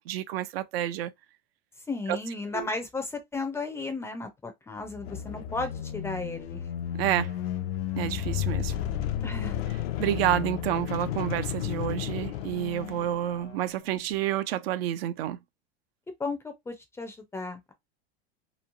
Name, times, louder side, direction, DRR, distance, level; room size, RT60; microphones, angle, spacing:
voice 1, 0.1-1.1 2.1-2.2 2.5-2.7 7.0-7.3 8.0-8.8 10.0-15.4, right 12 dB, 80° right, 0.4 m, -29 dB
voice 2, 1.9-6.6 9.2-9.6 16.2-17.7, left 3 dB, 10° left, 0.4 m, -34 dB
sound 1, 4.8-13.6, left 11 dB, 85° left, 0.5 m, -33 dB
3.1 x 2.3 x 2.4 m
supercardioid pair, 135°, 30 cm